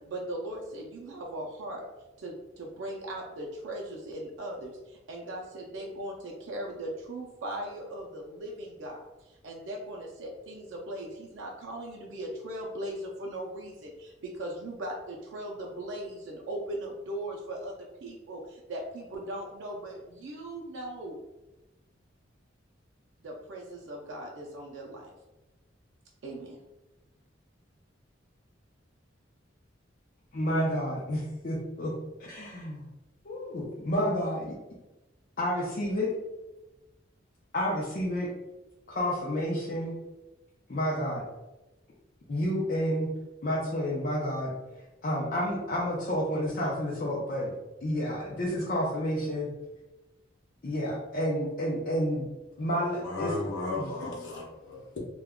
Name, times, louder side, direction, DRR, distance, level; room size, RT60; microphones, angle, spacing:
voice 1, 0.1-1.9 2.2-17.7 18.0-21.2 23.2-25.1 26.2-26.6, right 1 dB, 80° right, -1 dB, 0.4 m, -39 dB
voice 2, 30.3-31.9 32.2-32.9 33.2-34.5 35.4-36.1 37.5-38.3 38.9-39.9 40.7-41.2 42.3-43.1 43.4-44.5 45.0-47.5 47.8-49.5 50.6-52.3 52.6-53.3 53.8-53.9, equal, 45° left, -5 dB, 0.5 m, -30 dB
voice 3, 53.0-55.0, left 2 dB, 85° left, -3 dB, 0.6 m, -35 dB
2.2 x 2.1 x 3.5 m, 1.0 s
head